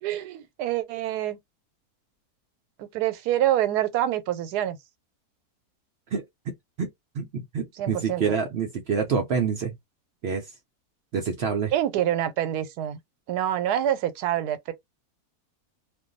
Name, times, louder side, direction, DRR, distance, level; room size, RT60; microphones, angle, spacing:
voice 1, 0.0-1.4 2.8-4.8 7.8-8.2 11.7-13.0 13.3-14.7, right 12 dB, 90° right, 1.1 m, -26 dB
voice 2, 6.8-9.7 10.2-10.5 11.1-11.7, right 6 dB, 65° right, 0.6 m, -27 dB
2.5 x 2.2 x 3.8 m
omnidirectional pair, 1.7 m